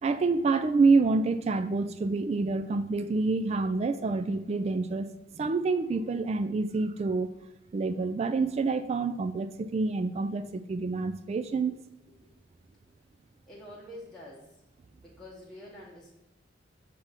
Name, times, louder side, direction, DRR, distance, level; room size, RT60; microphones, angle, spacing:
voice 1, 0.0-7.3 7.7-11.8, right 3 dB, 35° right, 11 dB, 0.3 m, -27 dB
voice 2, 13.5-14.5 15.0-16.1, left 1 dB, 5° left, -6 dB, 1.0 m, -47 dB
6.8 x 3.4 x 5.7 m, 0.92 s
head